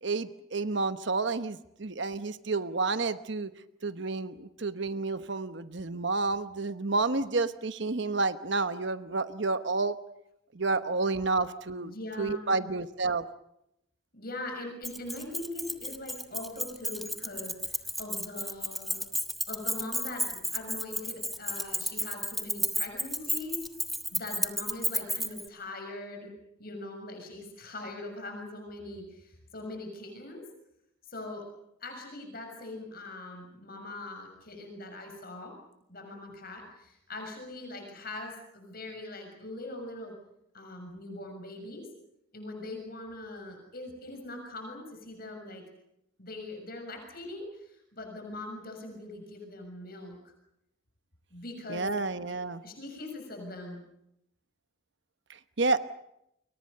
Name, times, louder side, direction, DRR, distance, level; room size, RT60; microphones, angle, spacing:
voice 1, 0.0-3.5 3.8-10.0 10.5-11.9 12.2-13.2 51.7-52.6 55.3-55.8, right 3 dB, 60° right, 11 dB, 1.1 m, -30 dB
voice 2, 11.8-12.6 14.1-19.0 19.5-23.6 24.1-26.3 26.6-30.4 31.1-31.4 31.8-35.5 35.9-40.1 40.5-41.8 42.3-45.6 46.2-50.3 51.3-51.9 52.3-52.4 52.6-53.8, left 2 dB, 45° left, 3 dB, 6.7 m, -41 dB
Keys jangling, 14.8-25.5, equal, ahead, 1.4 m, -33 dB
30.0 x 23.0 x 6.7 m, 0.80 s
head